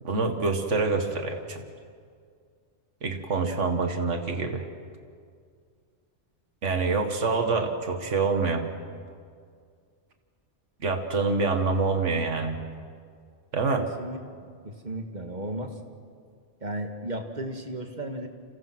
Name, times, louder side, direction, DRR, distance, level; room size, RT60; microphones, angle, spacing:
voice 1, 0.0-1.6 3.0-4.7 6.6-8.7 10.8-12.6 13.5-13.9, right 4 dB, 85° right, 6 dB, 2.0 m, -26 dB
voice 2, 13.8-14.2 14.6-15.7 16.6-18.3, right 1 dB, 40° right, 5 dB, 2.1 m, -34 dB
30.0 x 27.5 x 6.1 m, 2.2 s
omnidirectional pair, 1.2 m